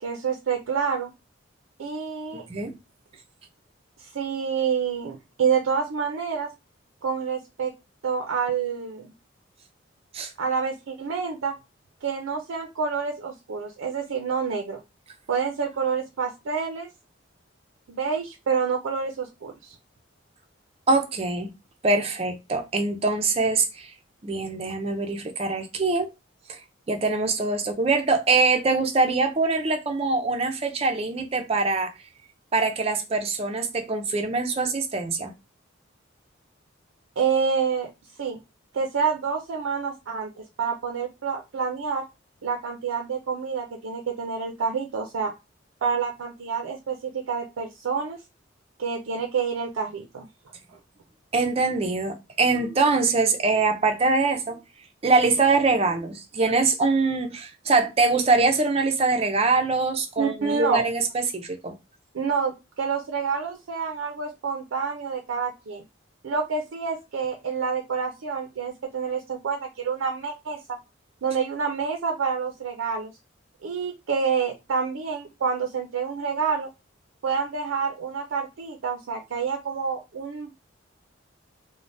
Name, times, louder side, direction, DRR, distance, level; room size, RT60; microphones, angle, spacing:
voice 1, 0.0-1.1 1.8-2.4 4.0-6.5 7.0-7.7 8.0-9.1 10.4-11.5 12.0-14.8 15.3-16.9 17.9-19.8 37.2-37.9 38.2-38.4 38.7-40.3 40.6-42.1 42.4-45.3 45.8-48.2 48.8-50.3 60.2-60.8 62.1-65.8 66.2-70.8 71.2-73.1 73.6-76.7 77.2-80.5, right 6 dB, 90° right, 0.4 m, -28 dB
voice 2, 2.3-2.8 10.1-10.3 20.9-21.5 21.8-23.9 24.2-26.1 26.5-26.6 26.9-31.9 32.5-35.3 51.3-54.6 55.0-61.7, right 3 dB, 30° right, 0.4 m, -23 dB
3.2 x 2.1 x 2.5 m
head